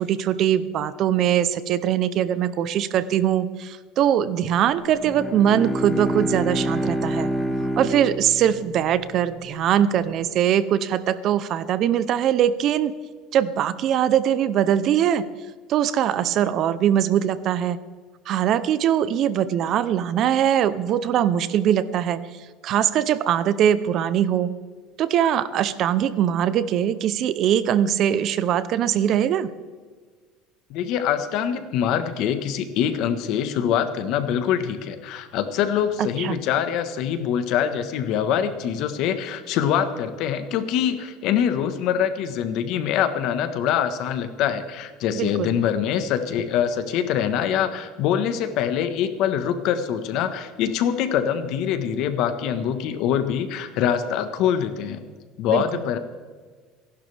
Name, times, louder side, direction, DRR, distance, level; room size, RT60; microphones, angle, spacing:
voice 1, 0.0-7.3 7.8-12.9 13.3-15.2 15.7-17.8 18.3-22.2 22.6-24.5 25.0-29.5 36.0-36.4 45.1-45.5 55.5-55.6, right 10 dB, 45° right, 15 dB, 0.7 m, -22 dB
Bowed string instrument, 4.9-9.5, right 1 dB, 10° left, 1.7 m, -28 dB
voice 2, 30.7-55.0 55.4-56.0, left 9 dB, 60° left, 9 dB, 1.4 m, -24 dB
27.5 x 11.5 x 3.5 m, 1.5 s
cardioid pair, 145°, 0 cm